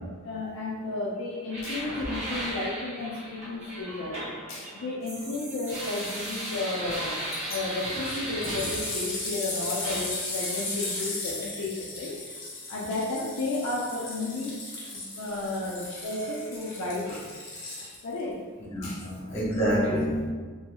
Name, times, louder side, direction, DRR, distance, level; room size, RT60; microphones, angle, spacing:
voice 1, 0.0-12.2 12.7-14.5 14.8-17.3 18.0-18.4 18.8-19.0, left 2 dB, 70° left, -5 dB, 0.5 m, -33 dB
sound 1, 1.5-9.5 9.8-11.0, right 1 dB, 30° right, 0.8 m, -36 dB
sound 2, 7.3-7.6 8.0-18.2 19.0-19.1, left 2 dB, 50° left, 0.9 m, -36 dB
voice 2, 18.7-20.3, equal, 30° left, -9 dB, 1.4 m, -28 dB
3.0 x 3.0 x 2.2 m, 1.5 s
head